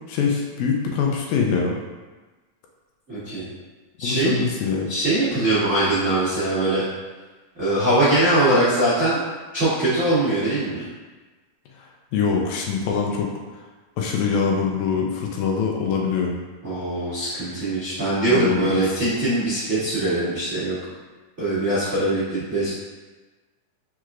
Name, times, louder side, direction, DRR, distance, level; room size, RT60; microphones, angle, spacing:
voice 1, 0.1-1.8 4.0-4.9 11.8-13.3 14.0-16.3 18.3-18.8, left 5 dB, 80° left, 0 dB, 1.7 m, -23 dB
voice 2, 3.1-3.5 4.0-4.4 4.9-6.8 7.5-9.2 9.5-10.8 16.6-20.8 21.4-22.7, right 1 dB, 45° right, -14 dB, 0.9 m, -22 dB
4.6 x 4.4 x 2.4 m, 1.2 s
omnidirectional pair, 3.8 m